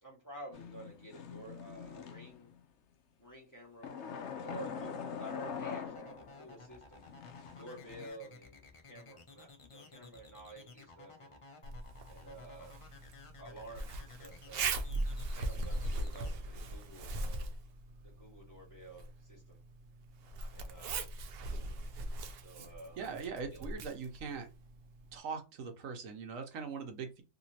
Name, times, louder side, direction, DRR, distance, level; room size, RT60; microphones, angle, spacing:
voice 1, 0.0-2.5 3.2-4.1 4.4-7.1 7.5-11.4 12.1-12.7 13.4-14.7 15.3-17.5 18.0-19.6 20.5-20.9 22.4-23.0 23.5-23.7, right 1 dB, 15° left, -4 dB, 1.4 m, -51 dB
sound 1, 0.5-2.6 3.8-6.5 7.0-8.1, left 7 dB, 65° left, 0.8 m, -43 dB
sound 2, 5.9-16.3, left 3 dB, 40° left, 0.5 m, -55 dB
Zipper (clothing), 11.6-25.2, right 2 dB, 60° right, 0.7 m, -40 dB
voice 2, 23.0-24.5 25.1-27.2, right 5 dB, 80° right, 5 dB, 1.2 m, -41 dB
2.9 x 2.9 x 2.7 m, 0.29 s
omnidirectional pair, 1.4 m